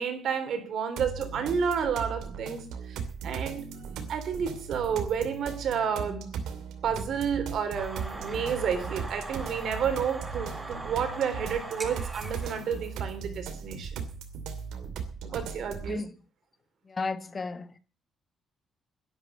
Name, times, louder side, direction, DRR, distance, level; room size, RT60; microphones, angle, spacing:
voice 1, 0.0-3.7 4.1-6.3 6.8-13.9 15.3-16.0, right 7 dB, 70° right, 3.6 m, -30 dB
sound 1, 1.0-16.0, right 6 dB, 85° right, 2.6 m, -38 dB
sound 2, 7.7-12.9, right 2 dB, 20° right, 4.7 m, -40 dB
voice 2, 16.8-17.8, left 3 dB, 35° left, 1.5 m, -34 dB
11.5 x 10.5 x 8.0 m
cardioid pair, 90°, 0 cm